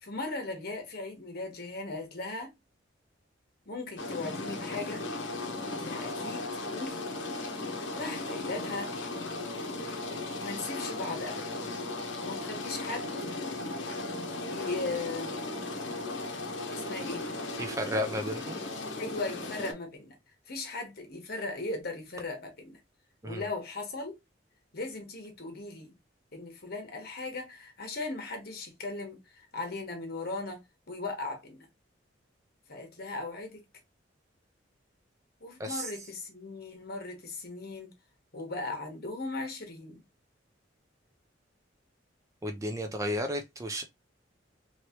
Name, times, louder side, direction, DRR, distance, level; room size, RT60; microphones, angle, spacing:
voice 1, 0.0-2.5 3.7-5.0 5.8-6.5 6.7-7.0 7.6-8.9 10.4-11.4 12.2-13.1 14.5-15.4 16.7-17.4 19.0-20.2 20.5-22.8 23.2-24.2 24.7-25.9 26.3-30.6 30.9-31.7 32.7-33.6 35.4-37.9 38.3-40.0, left 3 dB, 55° left, 1.2 m, -38 dB
sound 1, 4.0-19.7, left 2 dB, 75° left, 0.8 m, -36 dB
voice 2, 17.6-18.6 23.2-23.4 35.6-35.9 42.4-43.8, equal, 15° right, 0.4 m, -33 dB
3.1 x 3.0 x 2.8 m
head